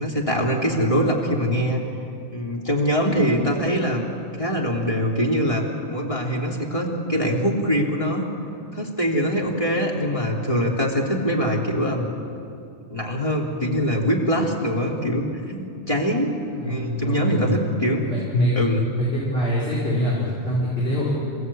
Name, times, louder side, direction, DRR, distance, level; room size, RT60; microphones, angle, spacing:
voice 1, 0.0-1.8 2.3-4.0 4.4-8.3 8.7-12.0 12.9-16.3 16.6-18.0 18.3-18.8, equal, 30° left, -2 dB, 3.4 m, -23 dB
voice 2, 16.6-17.6 18.0-21.1, equal, 55° left, -7 dB, 4.8 m, -25 dB
28.5 x 16.5 x 8.6 m, 2.6 s
omnidirectional pair, 1.2 m